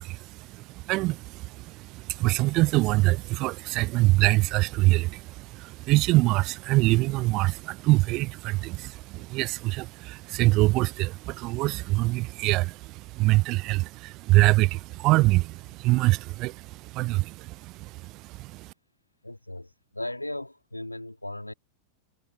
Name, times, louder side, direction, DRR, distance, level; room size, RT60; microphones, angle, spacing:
voice 1, 0.0-18.7, right 21 dB, 40° right, 0.8 m, -24 dB
voice 2, 19.2-21.5, left 1 dB, 85° left, 2.6 m, -37 dB
figure-of-eight pair, 90°, 0 cm